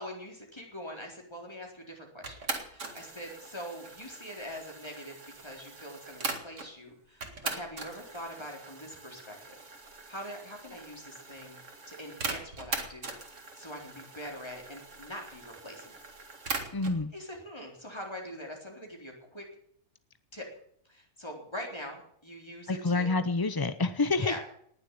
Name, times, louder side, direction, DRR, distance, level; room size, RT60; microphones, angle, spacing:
voice 1, 0.0-9.6 10.1-11.6 11.9-13.1 13.5-15.9 17.1-19.5 20.3-20.5 20.9-23.1 24.0-24.4, equal, 15° left, 0 dB, 4.2 m, -43 dB
sound 1, 2.2-6.7 7.2-17.0, right 3 dB, 50° right, 2.4 m, -41 dB
voice 2, 16.7-17.1 22.7-24.4, left 3 dB, 35° left, 12 dB, 0.3 m, -28 dB
19.0 x 7.3 x 9.2 m, 0.65 s
omnidirectional pair, 1.6 m